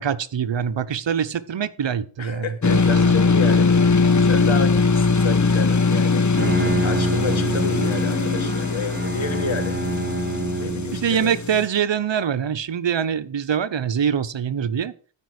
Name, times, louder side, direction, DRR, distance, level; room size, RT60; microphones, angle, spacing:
voice 1, 0.0-3.1 10.6-14.9, right 8 dB, 60° right, 1.0 m, -24 dB
voice 2, 2.2-6.2 6.6-9.8 10.6-11.4, left 5 dB, 70° left, 2.2 m, -30 dB
sound 1, 2.6-11.7, left 4 dB, 35° left, 1.3 m, -20 dB
Bowed string instrument, 6.2-11.2, right 2 dB, 25° right, 2.7 m, -27 dB
14.0 x 5.4 x 6.5 m
cardioid pair, 40°, 49 cm